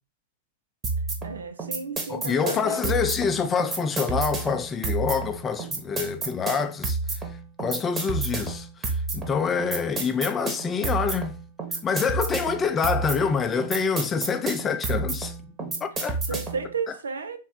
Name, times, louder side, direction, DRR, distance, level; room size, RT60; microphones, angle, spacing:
sound 1, 0.8-16.7, right 3 dB, 20° right, 1.1 m, -30 dB
voice 1, 1.2-2.9 16.0-17.4, right 5 dB, 80° right, 0.5 m, -33 dB
voice 2, 2.1-7.0 7.6-11.3 11.8-15.3 15.6-16.2, left 6 dB, 20° left, 0.5 m, -26 dB
3.6 x 3.2 x 4.2 m
figure-of-eight pair, 100°, 0 cm